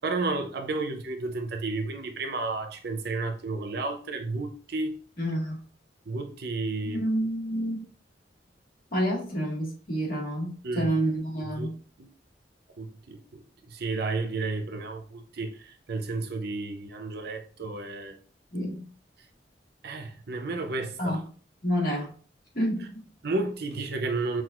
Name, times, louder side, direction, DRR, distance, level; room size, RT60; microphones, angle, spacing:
voice 1, 0.0-5.0 6.1-7.0 10.6-10.9 11.6-11.7 12.0-12.1 12.8-18.2 19.8-21.2 23.2-24.4, right 3 dB, 65° right, 0.6 m, -32 dB
voice 2, 5.2-5.6 6.8-7.8 8.9-11.7 18.5-18.9 21.0-21.2 21.6-22.1 22.5-23.1, equal, 55° left, 1.7 m, -29 dB
5.9 x 2.5 x 2.4 m
head